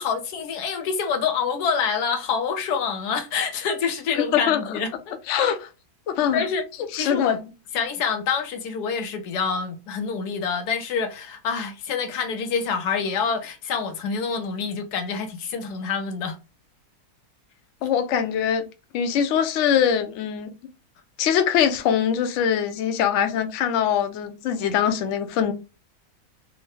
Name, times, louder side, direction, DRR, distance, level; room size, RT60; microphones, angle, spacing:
voice 1, 0.0-5.2 6.3-6.7 7.0-7.4 7.7-16.4, left 6 dB, 90° left, 1.2 m, -26 dB
voice 2, 5.3-5.7 6.1-6.4 6.9-7.4 17.8-18.6 18.9-20.5 21.2-25.5, left 8 dB, 65° left, 0.8 m, -22 dB
3.7 x 2.1 x 3.1 m
omnidirectional pair, 1.6 m